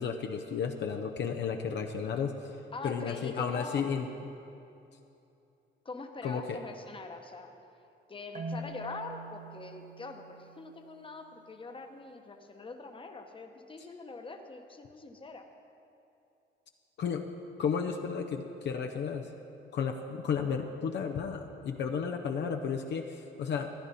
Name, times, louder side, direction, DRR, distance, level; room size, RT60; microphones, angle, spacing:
voice 1, 0.0-2.4 2.8-4.1 6.2-6.6 17.0-17.3 17.6-19.3 19.7-23.7, left 6 dB, 60° left, 3 dB, 0.7 m, -33 dB
voice 2, 2.7-3.9 5.8-7.5 8.1-15.5, left 3 dB, 25° left, 5 dB, 1.0 m, -43 dB
Marimba xylophone, 8.3-11.3, right 2 dB, 40° right, 1.1 m, -44 dB
14.5 x 10.0 x 4.1 m, 2.8 s
cardioid pair, 90°, 20 cm